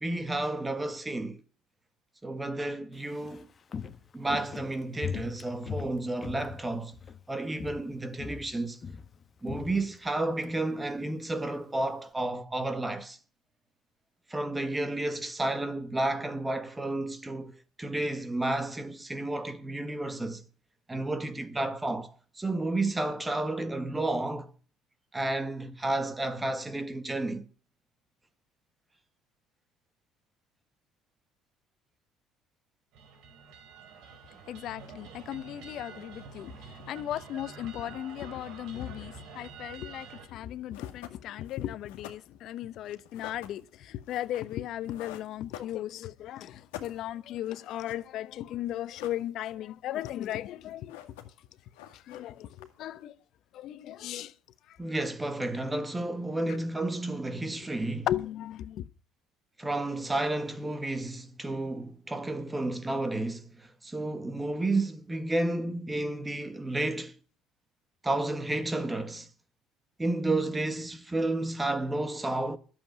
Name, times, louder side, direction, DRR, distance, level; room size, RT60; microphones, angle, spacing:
voice 1, 0.0-1.4 2.2-3.5 4.1-6.9 7.3-8.8 9.4-13.2 14.3-20.4 20.9-24.5 25.1-27.4 54.8-58.1 59.6-67.2 68.0-69.3 70.0-72.6, right 2 dB, 15° right, 1.5 m, -31 dB
Walk footsteps, 2.9-7.3 7.5-7.9 8.2-10.5 10.8-10.9, left 6 dB, 40° left, 1.3 m, -40 dB
sound 1, 32.9-40.3, right 5 dB, 70° right, 4.2 m, -48 dB
voice 2, 34.5-36.5 36.9-51.1 52.1-53.1 53.5-54.3 58.1-58.9, left 12 dB, 65° left, 0.9 m, -36 dB
sound 2, 40.3-40.4 40.7-46.2 46.5-48.1 48.3-48.4 48.7-49.6 49.9-50.5 50.7-51.5 51.7-53.0, left 12 dB, 85° left, 1.9 m, -48 dB
12.0 x 7.6 x 9.3 m
supercardioid pair, 75°, 0 cm